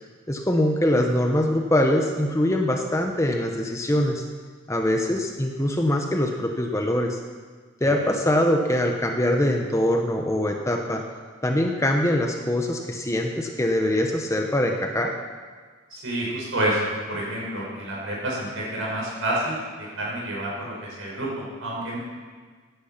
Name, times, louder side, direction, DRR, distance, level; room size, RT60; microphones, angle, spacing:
voice 1, 0.3-4.2 4.7-7.2 7.8-11.0 11.4-15.1, left 1 dB, 15° left, 3 dB, 0.9 m, -23 dB
voice 2, 15.9-16.8 17.1-22.0, right 1 dB, 65° right, -4 dB, 5.7 m, -29 dB
16.5 x 10.5 x 5.8 m, 1.5 s
head